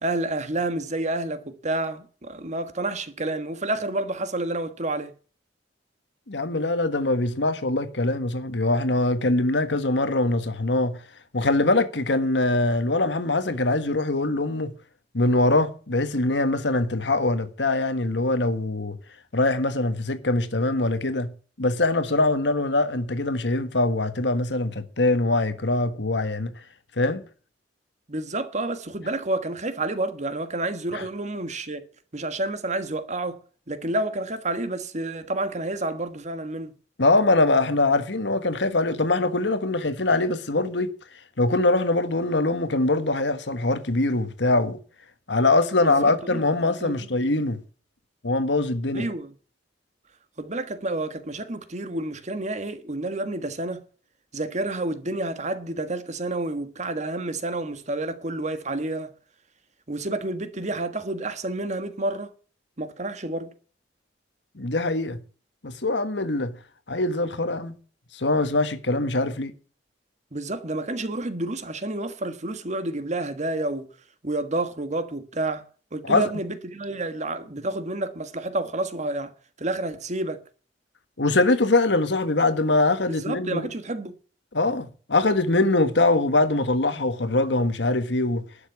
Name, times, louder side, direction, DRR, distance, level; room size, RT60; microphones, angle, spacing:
voice 1, 0.0-5.1 28.1-31.8 32.1-36.7 45.8-47.1 48.9-49.3 50.4-53.8 54.3-59.1 59.9-62.3 62.8-63.5 70.3-73.9 74.2-75.6 75.9-79.3 79.6-80.4 83.1-84.1, right 2 dB, 40° right, 1.5 m, -29 dB
voice 2, 6.3-11.0 11.3-14.7 15.1-19.0 19.3-21.3 21.6-26.5 27.0-27.2 30.9-31.0 37.0-40.9 41.4-44.8 45.3-47.6 48.2-49.1 64.5-65.2 65.6-66.5 66.9-67.8 68.1-69.5 76.0-76.3 81.2-83.7 84.5-88.4, left 2 dB, 70° left, 1.5 m, -23 dB
12.0 x 7.1 x 8.4 m
head